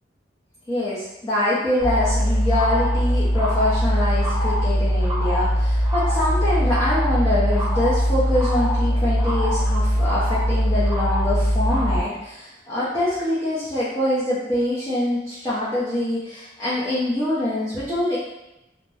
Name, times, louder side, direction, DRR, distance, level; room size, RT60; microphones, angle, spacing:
voice 1, 0.7-18.2, left 1 dB, 20° left, -11 dB, 0.6 m, -24 dB
sound 1, 1.8-12.0, equal, 10° right, 1.0 m, -21 dB
2.6 x 2.1 x 3.2 m, 0.94 s
head